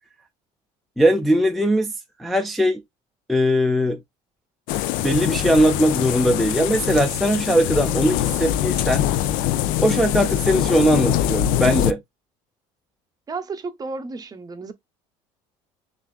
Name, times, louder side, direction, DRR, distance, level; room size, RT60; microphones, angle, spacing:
voice 1, 1.0-1.9 2.2-2.8 3.3-4.0 5.0-9.1 9.8-12.0, equal, ahead, 0.4 m, -20 dB
sound 1, 4.7-11.9, left 12 dB, 75° left, 0.4 m, -23 dB
voice 2, 13.3-14.7, right 4 dB, 25° right, 0.7 m, -32 dB
6.7 x 2.5 x 2.4 m
cardioid pair, 110°, 14 cm